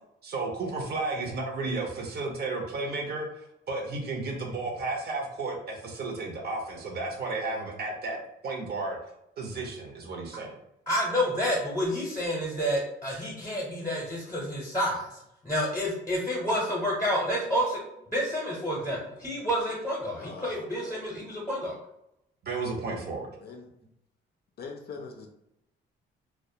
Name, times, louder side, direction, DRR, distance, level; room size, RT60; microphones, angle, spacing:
voice 1, 0.2-9.0 9.4-10.6 22.4-23.3, right 3 dB, 55° right, 1 dB, 0.6 m, -33 dB
voice 2, 10.9-17.8 18.1-21.7, equal, 15° left, -3 dB, 0.7 m, -29 dB
voice 3, 20.1-21.2 23.4-23.7 24.6-25.3, left 4 dB, 55° left, 3 dB, 0.4 m, -43 dB
2.3 x 2.1 x 2.7 m, 0.82 s
cardioid pair, 90°, 20 cm